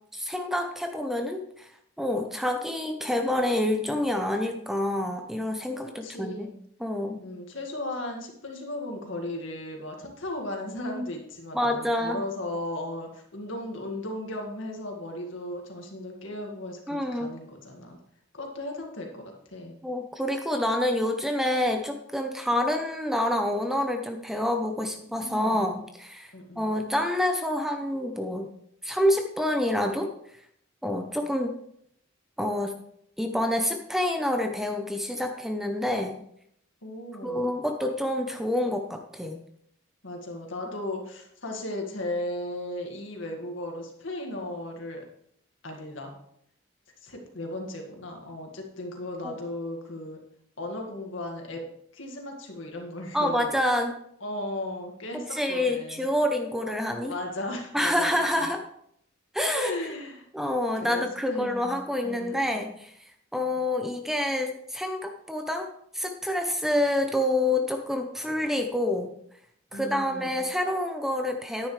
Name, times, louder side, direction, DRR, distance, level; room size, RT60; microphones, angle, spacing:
voice 1, 0.1-1.7 2.0-6.5 6.8-7.2 11.5-12.2 16.9-17.3 19.8-28.5 28.8-30.1 30.8-31.5 32.4-32.8 33.2-36.2 37.2-39.4 53.1-53.9 55.3-57.1 57.7-58.6 59.3-59.7 60.3-69.1 69.7-71.7, left 1 dB, ahead, 5 dB, 0.6 m, -27 dB
voice 2, 6.0-6.6 7.2-18.0 18.3-19.7 25.2-25.7 26.3-26.7 36.8-37.4 40.0-45.1 45.6-46.1 47.0-50.2 50.6-51.6 51.9-53.5 54.2-56.1 57.1-58.5 59.5-60.3 60.8-62.7 69.7-70.4, left 1 dB, 75° left, 1 dB, 2.0 m, -36 dB
10.0 x 9.7 x 3.2 m, 0.71 s
head